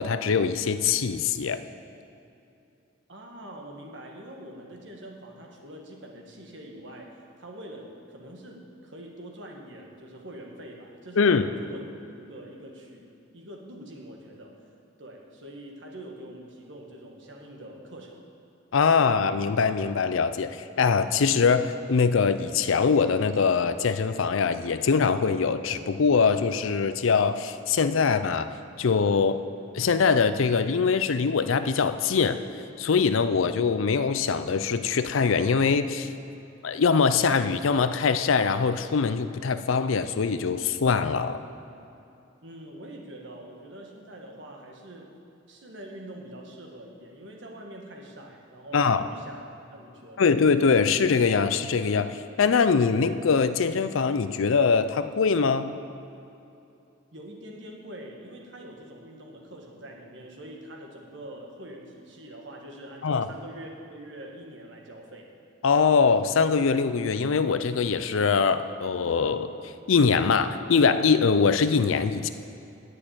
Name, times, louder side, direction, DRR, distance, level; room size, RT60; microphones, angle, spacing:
voice 1, 0.0-1.6 11.2-11.5 18.7-28.5 28.8-29.4 29.7-32.4 32.8-36.1 36.6-41.4 48.7-49.0 50.2-55.7 63.0-63.3 65.6-69.5 69.9-72.3, left 5 dB, 80° left, 11 dB, 0.5 m, -23 dB
voice 2, 3.1-11.9 12.2-14.6 15.0-18.2 42.4-45.2 45.5-49.4 49.7-50.3 57.1-65.3, right 1 dB, 65° right, 0 dB, 1.6 m, -44 dB
10.0 x 6.5 x 8.6 m, 2.7 s
head